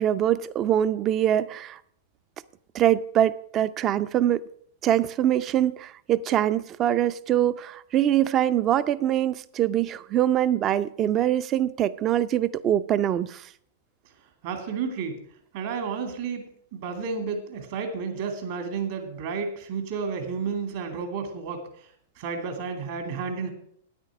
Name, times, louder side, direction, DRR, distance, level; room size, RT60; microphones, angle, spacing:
voice 1, 0.0-1.8 2.7-4.4 4.8-13.5, right 11 dB, 35° right, 16 dB, 0.5 m, -23 dB
voice 2, 14.4-15.2 15.5-16.4 16.7-21.6 22.2-23.5, right 5 dB, 60° right, 5 dB, 2.4 m, -31 dB
9.6 x 8.9 x 6.2 m, 0.64 s
hypercardioid pair, 105°, 0 cm